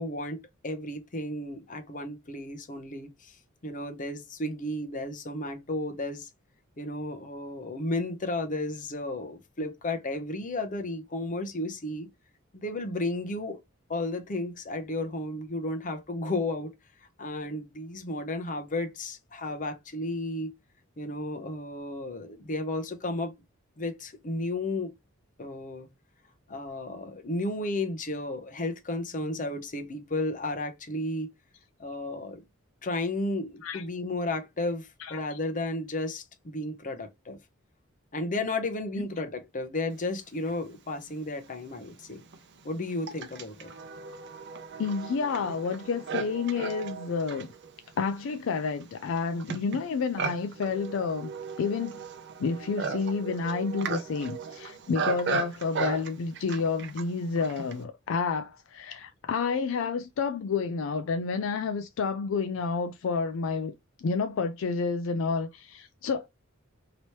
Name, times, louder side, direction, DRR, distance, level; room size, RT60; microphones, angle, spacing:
voice 1, 0.0-3.4 3.6-6.3 6.8-12.1 12.5-13.6 13.9-16.7 17.2-20.5 21.0-23.3 23.8-24.9 25.4-25.9 26.5-31.3 31.8-32.4 32.8-37.4 38.1-42.2 42.6-43.7, left 2 dB, 40° left, 0.7 m, -33 dB
voice 2, 35.0-35.4 39.0-39.1 44.8-47.5 48.0-51.3 51.6-52.0 52.4-66.3, left 5 dB, 70° left, 0.4 m, -30 dB
Livestock farm animals working animals, 41.1-41.2 41.9-57.8, right 5 dB, 60° right, 0.7 m, -36 dB
3.0 x 2.9 x 3.0 m
head